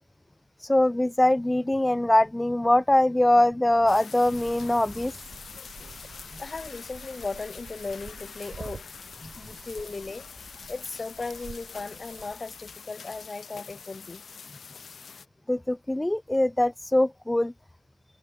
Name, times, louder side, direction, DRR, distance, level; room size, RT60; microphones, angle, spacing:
voice 1, 0.6-5.1 15.5-17.5, left 1 dB, 10° left, 0.4 m, -22 dB
sound 1, 3.9-15.3, left 6 dB, 45° left, 3.4 m, -45 dB
sound 2, 4.2-12.3, right 5 dB, 40° right, 7.8 m, -48 dB
voice 2, 6.4-8.9 9.4-14.2, left 3 dB, 25° left, 1.8 m, -37 dB
cardioid pair, 90°, 0 cm